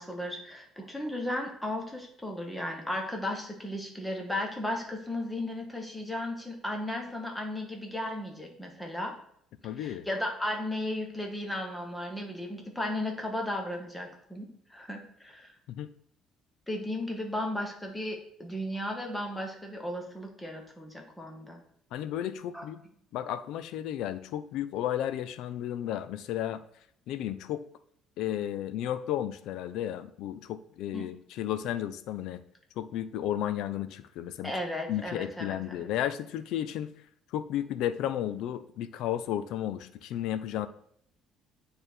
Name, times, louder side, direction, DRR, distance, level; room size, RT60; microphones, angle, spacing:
voice 1, 0.0-9.1 9.8-15.5 16.7-21.6 22.5-22.6 30.9-31.1 34.4-35.9, left 1 dB, 5° left, 2 dB, 1.0 m, -35 dB
voice 2, 9.6-10.1 15.7-15.9 21.9-22.8 23.1-26.6 27.1-27.7 28.2-32.4 32.8-34.5 34.9-36.9 37.3-40.7, left 11 dB, 70° left, 13 dB, 0.5 m, -33 dB
8.8 x 3.4 x 4.4 m, 0.68 s
cardioid pair, 170°, 0 cm